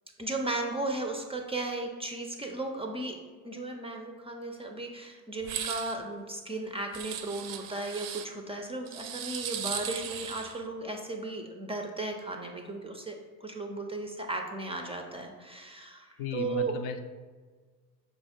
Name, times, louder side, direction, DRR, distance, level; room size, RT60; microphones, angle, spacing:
voice 1, 0.2-3.2 3.4-13.2 13.4-16.8, right 2 dB, 15° right, 3 dB, 0.4 m, -35 dB
sound 1, 5.4-6.0 6.9-8.3 8.9-10.6, right 9 dB, 65° right, 0.5 m, -37 dB
voice 2, 16.2-17.0, left 6 dB, 65° left, 7 dB, 0.5 m, -35 dB
5.1 x 2.4 x 4.2 m, 1.5 s
hypercardioid pair, 65°, 47 cm